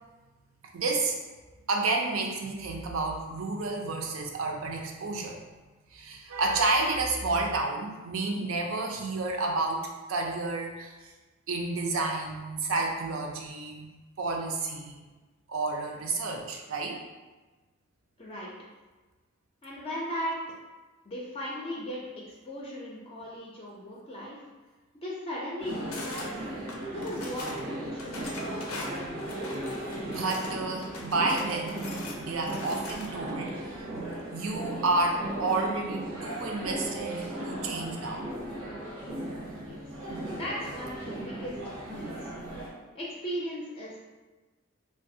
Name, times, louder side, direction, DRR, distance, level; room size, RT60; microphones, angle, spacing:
voice 1, 0.7-1.2 1.7-5.4 5.9-9.8 10.1-11.1 11.5-13.9 14.2-15.0 15.5-17.0 30.1-31.9 32.2-33.7 34.3-38.3, right 3 dB, 75° right, 2 dB, 0.5 m, -30 dB
voice 2, 18.2-18.5 19.6-20.4 21.1-24.5 25.0-26.4 26.9-29.1 39.6-39.9 40.3-42.3 42.9-44.0, equal, 25° left, -5 dB, 0.4 m, -37 dB
sound 1, 25.6-42.7, right 1 dB, 90° right, 0.8 m, -37 dB
sound 2, 25.9-26.3 26.7-27.6 28.0-30.5 30.8-33.3, left 3 dB, 90° left, 0.5 m, -42 dB
3.2 x 2.3 x 2.6 m, 1.2 s
head